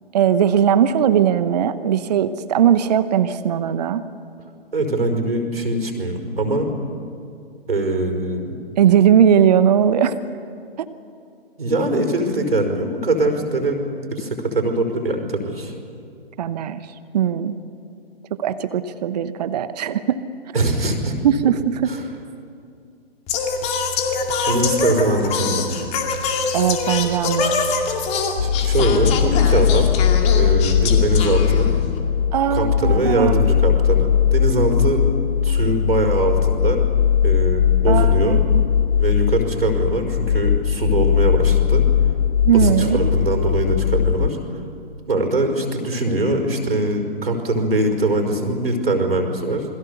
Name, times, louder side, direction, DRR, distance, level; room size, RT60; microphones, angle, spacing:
voice 1, 0.1-4.0 8.8-10.2 10.8-10.9 16.4-16.8 17.1-17.5 18.4-20.2 21.2-21.9 26.5-27.5 32.3-33.3 37.9-38.6 42.4-43.1, right 9 dB, 40° right, 13 dB, 1.0 m, -19 dB
voice 2, 4.7-6.7 7.7-8.6 11.6-13.8 14.1-15.7 20.5-21.1 21.4-21.5 21.9-22.0 24.5-25.7 28.4-29.9 30.3-31.7 32.5-35.1 35.4-36.8 37.2-38.4 38.9-41.8 42.5-44.4 45.1-49.6, right 2 dB, 70° right, 4 dB, 5.0 m, -22 dB
Singing, 23.3-32.0, left 5 dB, 20° left, 2.4 m, -24 dB
sound 1, 28.4-44.3, left 8 dB, 80° left, 0.5 m, -19 dB
27.5 x 21.0 x 6.9 m, 2.4 s
figure-of-eight pair, 125°, 31 cm